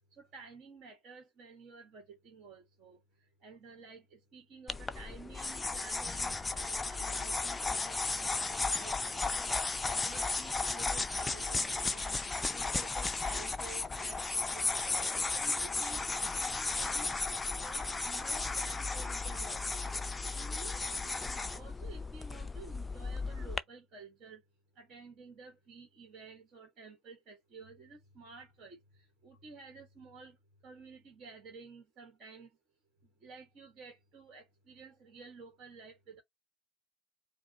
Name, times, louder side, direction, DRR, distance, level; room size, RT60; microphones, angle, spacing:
voice 1, 0.2-3.0 3.4-9.5 9.9-12.2 12.5-14.9 15.3-17.1 17.5-19.8 20.3-24.4 24.8-30.4 30.6-32.5 33.2-36.2, right 4 dB, 40° right, 1.3 m, -52 dB
sound 1, 4.7-23.6, left 3 dB, 15° left, 0.5 m, -35 dB
4.8 x 2.1 x 4.0 m
figure-of-eight pair, 60°, 0 cm